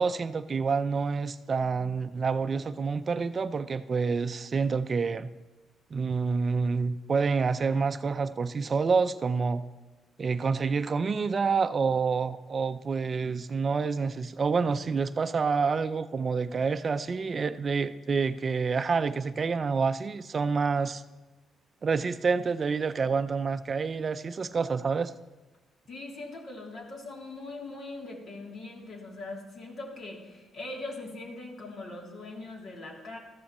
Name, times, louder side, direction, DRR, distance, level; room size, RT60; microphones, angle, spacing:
voice 1, 0.0-5.3 5.9-9.6 10.2-21.0 21.8-25.1, right 5 dB, 40° right, 12 dB, 0.4 m, -28 dB
voice 2, 25.9-33.2, left 2 dB, 60° left, -1 dB, 2.8 m, -41 dB
14.0 x 13.0 x 3.0 m, 1.1 s
cardioid pair, 90°, 0 cm